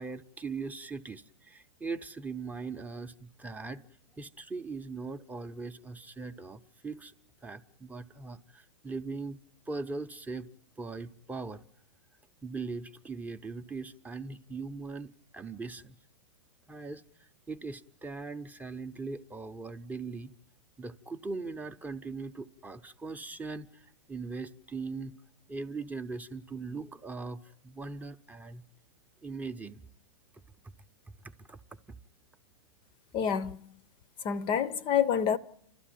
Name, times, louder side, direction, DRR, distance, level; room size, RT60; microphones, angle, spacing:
voice 1, 0.0-3.8 4.1-7.1 7.4-9.4 9.7-10.5 10.8-11.6 12.4-15.9 16.7-20.3 20.8-25.2 25.5-28.6 29.2-29.8 31.5-31.6 31.9-32.0, right 4 dB, 10° right, 0.8 m, -40 dB
voice 2, 33.1-33.7 34.2-35.4, left 8 dB, 30° left, 0.8 m, -28 dB
29.5 x 13.0 x 9.2 m
hypercardioid pair, 120°, 16 cm